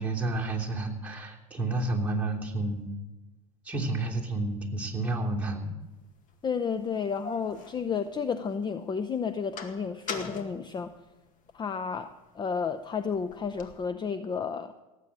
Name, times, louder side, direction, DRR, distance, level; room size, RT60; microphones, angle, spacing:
voice 1, 0.0-2.9 3.6-5.7, right 2 dB, 10° right, -1 dB, 3.0 m, -30 dB
sound 1, 6.0-6.1 6.8-8.6 9.0-11.6 12.1-13.9, left 4 dB, 45° left, 2.1 m, -42 dB
voice 2, 6.4-10.9 11.5-14.7, left 6 dB, 25° left, 11 dB, 0.7 m, -32 dB
18.0 x 8.4 x 7.5 m, 1.1 s
hypercardioid pair, 95°, 19 cm